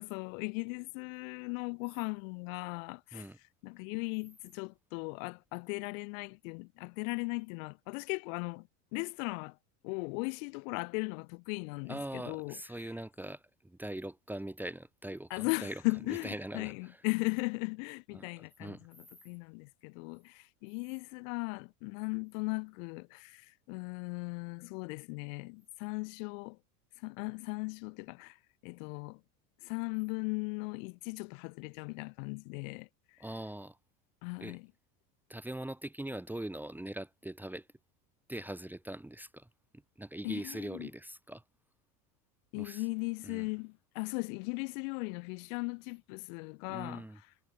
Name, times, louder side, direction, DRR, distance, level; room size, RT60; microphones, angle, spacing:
voice 1, 0.0-3.3 3.6-9.6 9.8-12.6 15.3-26.6 27.0-28.4 28.6-29.2 29.6-32.9 34.2-34.7 40.2-40.9 42.5-47.1, left 34 dB, 65° left, 3.8 m, -38 dB
voice 2, 11.9-15.8 16.1-17.0 18.1-18.9 33.2-33.8 34.4-34.6 35.3-37.7 38.3-39.5 40.0-41.4 42.6-42.8 43.2-43.5 46.7-47.2, right 1 dB, 5° right, 1.7 m, -42 dB
supercardioid pair, 130°, 42 cm